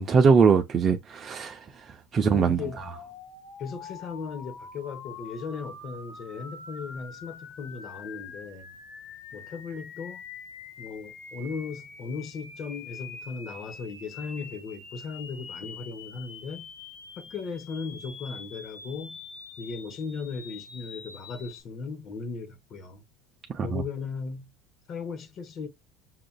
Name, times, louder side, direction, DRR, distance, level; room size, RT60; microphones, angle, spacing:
voice 1, 0.0-1.6 2.1-2.6 23.5-23.8, right 5 dB, 35° right, 0.5 m, -21 dB
voice 2, 2.2-2.9 3.6-8.7 9.3-10.2 10.8-16.7 17.2-19.2 19.6-23.0 23.6-24.5 24.9-25.7, left 5 dB, 45° left, 0.9 m, -37 dB
sound 1, 2.6-21.6, left 5 dB, 70° left, 1.2 m, -45 dB
5.8 x 2.4 x 2.2 m
supercardioid pair, 105°, 0 cm